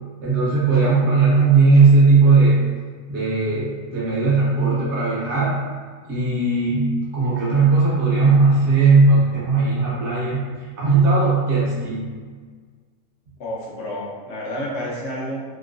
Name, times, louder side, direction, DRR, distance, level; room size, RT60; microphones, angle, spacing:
voice 1, 0.2-2.6 3.1-5.6 6.1-10.4 10.8-12.1, right 3 dB, 55° right, -7 dB, 1.0 m, -17 dB
voice 2, 13.4-15.6, equal, 60° left, -3 dB, 0.8 m, -30 dB
3.0 x 2.8 x 2.5 m, 1.5 s
omnidirectional pair, 1.6 m